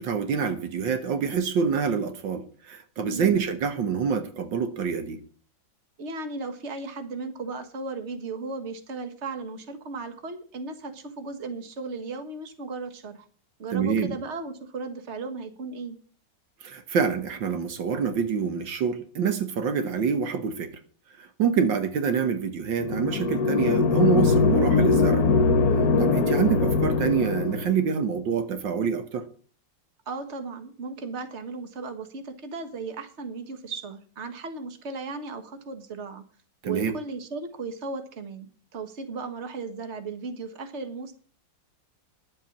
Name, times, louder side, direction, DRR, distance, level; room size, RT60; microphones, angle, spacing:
voice 1, 0.0-5.2 13.7-14.2 16.6-20.7 21.4-25.2 25.7-29.2 36.6-37.0, right 6 dB, 75° right, 8 dB, 1.9 m, -26 dB
voice 2, 6.0-13.3 13.6-16.0 30.0-36.2 36.6-41.1, right 3 dB, 40° right, 9 dB, 1.7 m, -36 dB
sound 1, 22.8-27.8, left 4 dB, 60° left, 1.3 m, -22 dB
11.0 x 7.9 x 7.2 m, 0.43 s
omnidirectional pair, 2.1 m